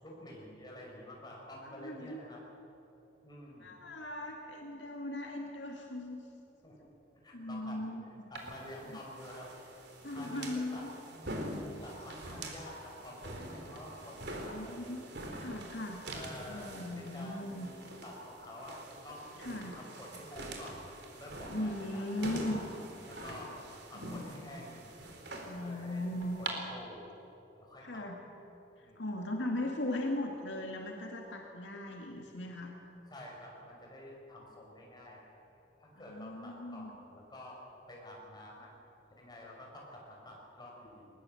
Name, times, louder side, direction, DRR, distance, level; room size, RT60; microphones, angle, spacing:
voice 1, 0.0-2.4 3.2-3.8 6.6-6.8 7.1-7.9 8.3-9.5 10.1-10.9 11.8-15.0 16.1-19.3 19.7-20.9 21.2-22.6 23.0-23.5 23.9-24.9 25.6-26.1 26.4-27.2 27.6-28.0 28.8-29.0 33.1-35.3 35.8-37.6 37.9-38.7 39.2-41.1, left 1 dB, 20° left, -2 dB, 5.8 m, -49 dB
voice 2, 1.6-2.2 3.6-6.2 7.3-8.1 10.0-10.9 14.5-15.0 15.4-16.0 16.5-17.7 19.4-19.8 21.5-22.6 23.9-24.6 25.5-26.4 27.8-28.2 28.8-32.7 36.0-36.9, left 1 dB, 70° left, 1 dB, 2.3 m, -38 dB
sound 1, 8.4-26.5, right 1 dB, 60° right, 3.6 m, -45 dB
21.5 x 20.5 x 7.9 m, 2.9 s
head